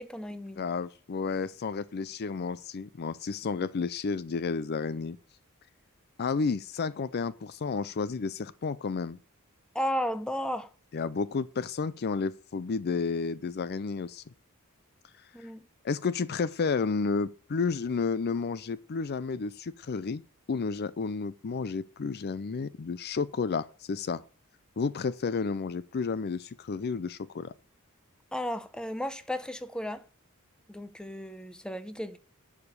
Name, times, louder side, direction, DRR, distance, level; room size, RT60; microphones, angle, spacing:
voice 1, 0.0-0.6 9.7-10.7 15.3-15.7 28.3-30.0 30.7-32.2, equal, 5° left, 0.7 m, -34 dB
voice 2, 0.6-5.2 6.2-9.2 10.9-14.2 15.4-15.5 15.8-20.2 20.5-24.2 24.8-27.5, left 4 dB, 50° left, 0.5 m, -31 dB
11.0 x 5.0 x 6.7 m
head